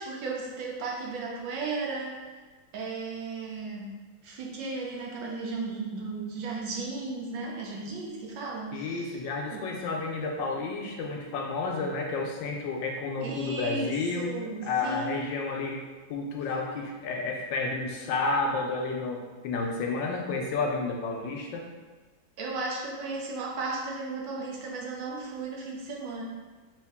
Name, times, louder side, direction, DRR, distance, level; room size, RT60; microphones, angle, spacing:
voice 1, 0.0-2.2 2.7-3.9 4.2-9.0 9.5-9.7 13.2-15.2 22.4-26.2, right 3 dB, 75° right, -2 dB, 1.4 m, -35 dB
voice 2, 8.7-14.4 14.6-15.8 16.1-21.7, left 3 dB, 75° left, 1 dB, 1.2 m, -31 dB
3.3 x 3.1 x 3.5 m, 1.3 s
omnidirectional pair, 2.1 m